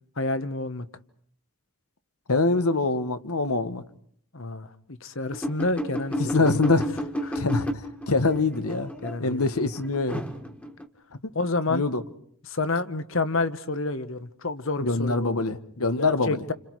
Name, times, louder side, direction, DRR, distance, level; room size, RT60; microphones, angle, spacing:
voice 1, 0.2-0.9 4.3-4.7 5.0-6.5 7.2-7.4 9.0-9.4 11.3-11.8 12.5-15.4 15.8-16.5, left 3 dB, 60° left, 1.2 m, -29 dB
voice 2, 2.3-3.8 6.2-6.9 7.3-8.9 9.2-10.3 11.7-12.0 14.8-16.4, left 3 dB, 80° left, 1.4 m, -24 dB
sound 1, 5.3-10.9, equal, 5° left, 1.7 m, -32 dB
30.0 x 28.5 x 4.8 m
head